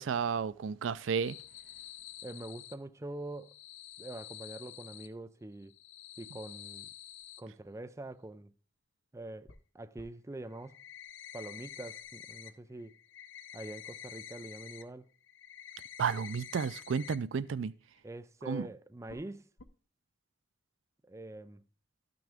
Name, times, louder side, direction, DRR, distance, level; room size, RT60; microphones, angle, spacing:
voice 1, 0.0-1.4 16.0-17.7 18.5-18.7, right 6 dB, 85° right, 0.4 m, -32 dB
sound 1, 0.9-2.8 3.3-5.1 5.6-7.4 9.5-9.6 10.0-10.1 10.5-12.5 12.8-14.8 15.2-17.2 17.5-17.6 18.0-18.1 19.1-19.3 19.6-19.7, left 10 dB, 80° left, 0.7 m, -49 dB
voice 2, 2.2-3.5 4.0-5.7 6.2-6.9 7.4-8.5 9.1-10.8 11.3-13.0 13.5-15.1 18.0-19.5 21.0-21.6, right 2 dB, 15° right, 0.4 m, -44 dB
12.5 x 6.1 x 3.5 m
head